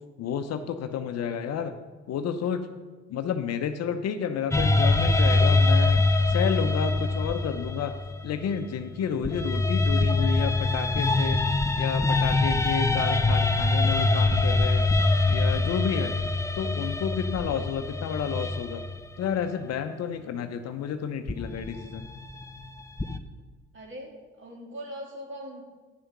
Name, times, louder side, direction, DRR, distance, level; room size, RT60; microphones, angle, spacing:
voice 1, 0.2-1.7 2.1-2.7 3.1-6.0 6.3-7.9 8.2-14.9 15.3-16.1 16.5-18.8 19.2-22.1, left 7 dB, 50° left, 9 dB, 0.8 m, -31 dB
sound 1, 4.5-8.7 9.2-19.3 21.3-23.2, left 2 dB, 10° left, 0.7 m, -24 dB
voice 2, 5.7-6.1 23.7-24.1 24.4-25.6, equal, 35° right, -1 dB, 3.1 m, -41 dB
9.3 x 6.4 x 6.1 m, 1.4 s
hypercardioid pair, 55°, 32 cm